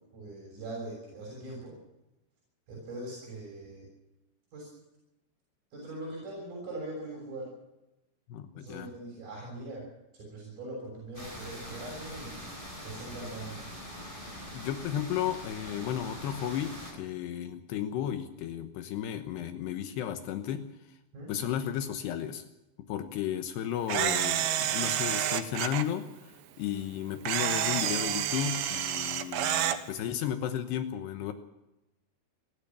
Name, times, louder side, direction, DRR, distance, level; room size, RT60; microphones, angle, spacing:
voice 1, 0.1-1.7 2.7-3.9 4.5-4.7 5.7-7.5 8.5-9.8 10.1-12.4 12.8-13.6 21.1-21.3, right 2 dB, 55° right, -3 dB, 8.6 m, -41 dB
voice 2, 8.3-8.9 14.5-21.0 21.3-22.4 22.8-31.3, left 10 dB, 80° left, 9 dB, 3.1 m, -34 dB
sound 1, 11.1-16.9, equal, 10° left, 7.5 m, -43 dB
Camera, 23.9-25.8 27.3-29.8, right 11 dB, 85° right, 3.6 m, -29 dB
29.0 x 12.5 x 7.4 m, 0.95 s
omnidirectional pair, 4.9 m